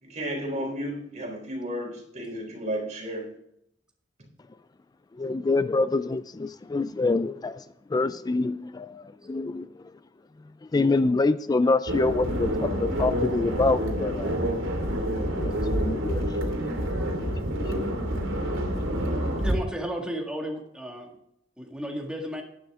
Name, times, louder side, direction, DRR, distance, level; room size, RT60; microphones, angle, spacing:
voice 1, 0.0-3.3, equal, 40° right, 3.9 m, -33 dB
voice 2, 5.1-9.9 10.6-14.5 15.3-16.4 17.2-17.3 17.6-18.1, left 3 dB, 20° left, 0.3 m, -26 dB
sound 1, 11.9-19.5, equal, 75° right, 2.7 m, -28 dB
voice 3, 19.4-21.1 21.6-22.4, equal, 5° right, 1.9 m, -33 dB
11.0 x 10.0 x 3.7 m
head